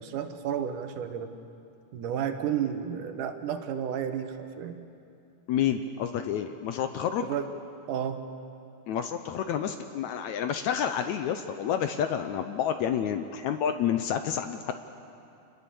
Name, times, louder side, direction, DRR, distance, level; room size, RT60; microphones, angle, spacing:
voice 1, 0.0-1.3 1.9-4.8 7.2-7.5 7.9-8.2, right 8 dB, 75° right, 7 dB, 2.6 m, -32 dB
voice 2, 5.5-7.3 8.9-14.7, left 9 dB, 75° left, 8 dB, 1.8 m, -29 dB
27.0 x 20.5 x 7.0 m, 2.6 s
omnidirectional pair, 3.8 m